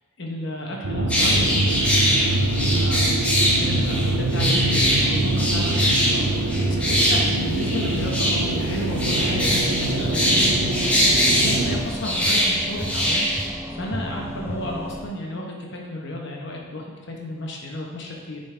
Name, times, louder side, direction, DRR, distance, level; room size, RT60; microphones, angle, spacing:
voice 1, 0.2-3.1 3.6-10.9 11.4-13.3 13.7-18.4, left 1 dB, 55° left, -1 dB, 1.1 m, -33 dB
sound 1, 0.8-11.8, right 2 dB, 85° right, 0.7 m, -24 dB
sound 2, 1.1-13.4, equal, 5° left, 1.0 m, -22 dB
sound 3, 8.9-15.1, equal, 10° right, 0.4 m, -33 dB
8.5 x 4.1 x 3.4 m, 1.4 s
head